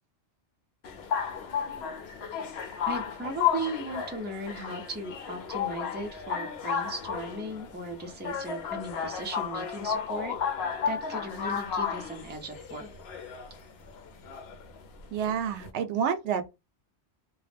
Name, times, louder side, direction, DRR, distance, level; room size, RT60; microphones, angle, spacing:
sound 1, 0.8-15.7, left 7 dB, 70° left, 0.8 m, -33 dB
voice 1, 2.9-10.4 10.9-12.9, right 1 dB, 15° right, 0.4 m, -37 dB
voice 2, 15.1-16.5, right 7 dB, 85° right, 0.9 m, -29 dB
2.2 x 2.0 x 3.2 m
omnidirectional pair, 1.1 m